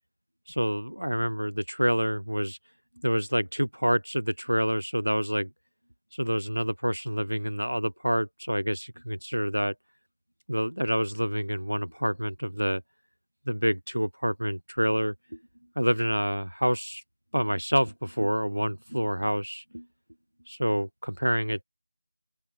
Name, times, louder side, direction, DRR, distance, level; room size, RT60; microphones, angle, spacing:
voice 1, 0.5-2.6 3.0-5.5 6.2-9.7 10.5-12.8 13.5-15.4 15.8-17.0 17.3-19.9 20.5-21.6, equal, 85° right, 0.4 m, -27 dB
open air
figure-of-eight pair, 165°, 0 cm